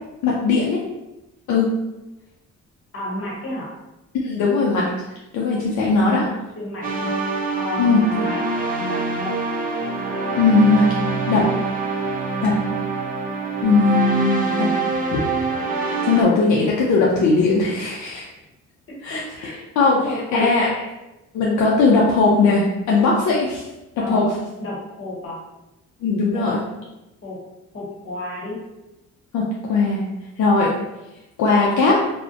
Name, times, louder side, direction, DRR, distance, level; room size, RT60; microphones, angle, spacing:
voice 1, 0.2-0.8 1.5-1.7 4.1-4.9 5.3-6.3 7.8-8.2 10.4-10.9 11.3-11.4 12.4-12.5 13.6-14.7 15.1-15.2 15.8-18.2 19.0-19.2 19.8-20.7 21.3-23.6 24.1-24.2 26.0-26.6 29.3-30.0 30.4-30.7 31.4-32.0, left 3 dB, 70° left, -4 dB, 0.5 m, -18 dB
voice 2, 2.9-3.7 6.6-7.1 7.6-8.4 8.7-9.4 19.1-19.6 19.8-20.9 24.0-24.3 24.6-25.4 26.3-26.5 27.2-27.4 27.7-28.6, left 1 dB, 45° left, -4 dB, 1.0 m, -32 dB
sound 1, 6.8-16.2, right 3 dB, 30° right, 0.4 m, -25 dB
2.4 x 2.1 x 2.4 m, 0.99 s
cardioid pair, 90°, 30 cm